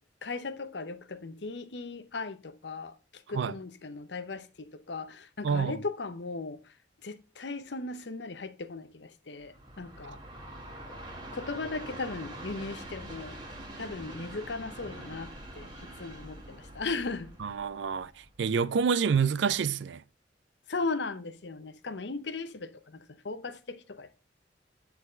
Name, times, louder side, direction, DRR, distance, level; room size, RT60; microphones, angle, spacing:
voice 1, 0.2-6.7 7.0-10.2 11.3-13.4 13.8-17.6 20.7-24.2, left 3 dB, 70° left, 0.8 m, -37 dB
voice 2, 5.4-5.8 10.1-10.2 17.4-20.0, right 6 dB, 85° right, 0.4 m, -28 dB
Train, 9.4-18.6, right 1 dB, 25° right, 1.8 m, -45 dB
9.7 x 4.2 x 5.1 m
head